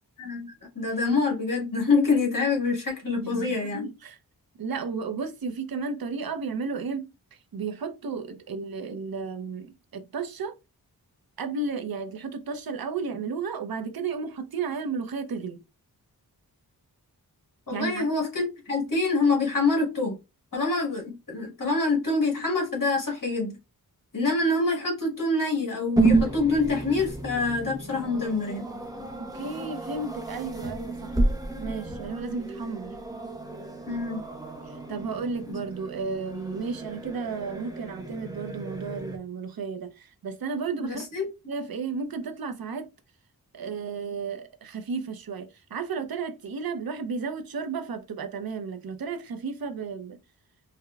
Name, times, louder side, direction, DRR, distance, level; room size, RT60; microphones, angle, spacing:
voice 1, 0.2-3.8 17.7-20.2 20.5-23.6 24.1-28.6 33.9-34.2 35.5-35.6 40.8-41.2, left 3 dB, 55° left, 1.5 m, -26 dB
voice 2, 3.2-4.2 4.6-7.1 7.5-10.5 11.4-15.6 17.7-18.1 29.2-31.2 31.6-33.0 34.7-41.1 41.5-42.9 43.5-50.2, right 4 dB, 65° right, 0.6 m, -33 dB
sound 1, 26.0-39.2, right 3 dB, 10° right, 0.6 m, -31 dB
4.8 x 2.2 x 2.3 m
wide cardioid pair, 95°, 38 cm